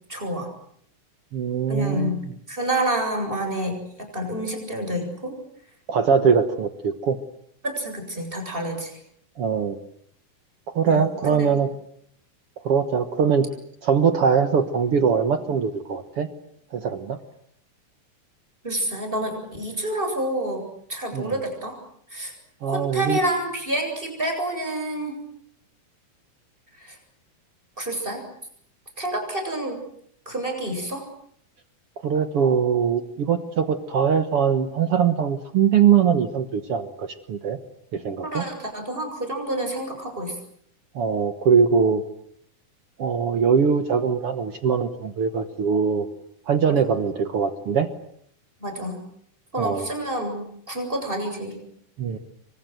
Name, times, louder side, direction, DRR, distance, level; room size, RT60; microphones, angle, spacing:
voice 1, 0.1-0.5 1.7-2.2 2.5-5.3 7.6-9.0 10.9-11.0 11.3-11.5 18.6-21.8 22.1-22.3 22.7-25.2 26.8-27.0 27.8-28.2 29.0-29.8 30.3-31.0 38.2-40.4 46.7-46.8 48.6-49.0 49.5-51.6, right 1 dB, 15° right, 3 dB, 7.9 m, -28 dB
voice 2, 1.3-2.2 5.9-7.2 9.4-9.8 10.7-11.7 12.6-13.5 13.8-16.3 16.7-17.2 21.1-21.4 22.6-23.2 32.0-37.6 37.9-38.4 41.0-42.0 43.0-46.1 46.5-47.9 49.6-49.9 52.0-52.2, right 6 dB, 55° right, 9 dB, 1.8 m, -22 dB
29.0 x 24.5 x 8.0 m, 0.69 s
omnidirectional pair, 4.0 m